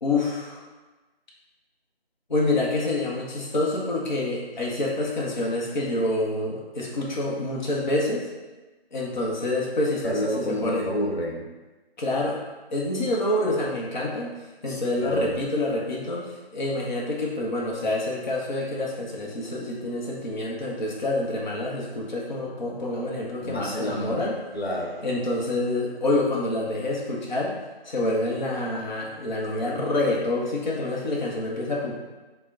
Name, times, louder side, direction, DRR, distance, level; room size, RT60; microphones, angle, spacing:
voice 1, 0.0-0.6 2.3-8.3 8.9-10.9 12.0-12.4 12.7-14.3 14.6-16.2 16.5-24.4 25.0-27.5 27.8-31.9, left 2 dB, 45° left, -4 dB, 0.7 m, -27 dB
voice 2, 10.0-11.4 14.7-15.3 23.4-24.3 24.5-25.0, equal, 90° left, -1 dB, 1.0 m, -29 dB
4.4 x 2.1 x 3.6 m, 1.2 s
figure-of-eight pair, 165°, 31 cm